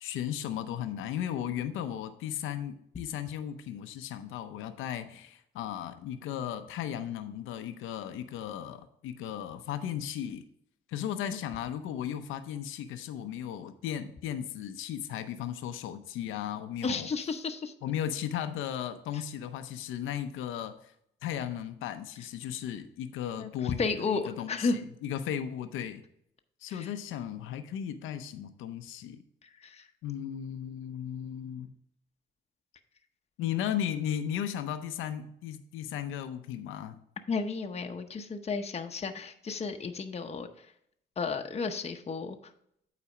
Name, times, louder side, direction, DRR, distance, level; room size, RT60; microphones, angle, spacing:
voice 1, 0.0-10.4 10.9-17.1 17.8-20.9 21.2-24.7 25.0-26.0 26.6-29.2 30.0-31.7 33.4-37.0, left 10 dB, 90° left, 9 dB, 0.6 m, -36 dB
voice 2, 16.8-17.7 23.4-24.8 26.7-26.9 29.6-29.9 37.3-40.7 41.2-42.4, left 4 dB, 30° left, 5 dB, 0.8 m, -33 dB
8.5 x 4.1 x 4.9 m, 0.72 s
cardioid pair, 90°, 20 cm